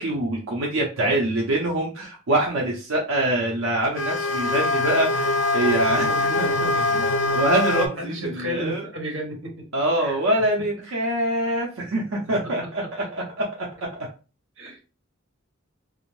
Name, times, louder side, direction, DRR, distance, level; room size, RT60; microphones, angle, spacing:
voice 1, 0.0-8.9 9.7-13.7, right 1 dB, 90° right, -2 dB, 0.6 m, -25 dB
sound 1, 4.0-7.9, left 2 dB, 75° left, 0.5 m, -23 dB
voice 2, 6.1-6.5 8.0-9.7 10.0-10.2 12.2-13.1 14.6-14.8, equal, 65° right, 1 dB, 1.0 m, -34 dB
2.5 x 2.0 x 3.0 m, 0.34 s
head